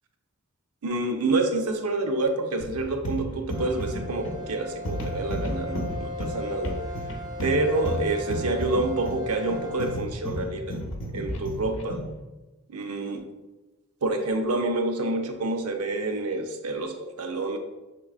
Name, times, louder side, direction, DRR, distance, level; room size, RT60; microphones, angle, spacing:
voice 1, 0.8-6.8 7.4-10.8 11.1-12.0 12.7-13.3 14.0-17.6, right 2 dB, 85° right, 5 dB, 0.6 m, -28 dB
sound 1, 2.6-12.2, equal, 55° left, 0.6 m, -33 dB
sound 2, 3.5-10.0, left 2 dB, 20° right, 0.4 m, -37 dB
5.7 x 3.7 x 2.4 m, 1.1 s
head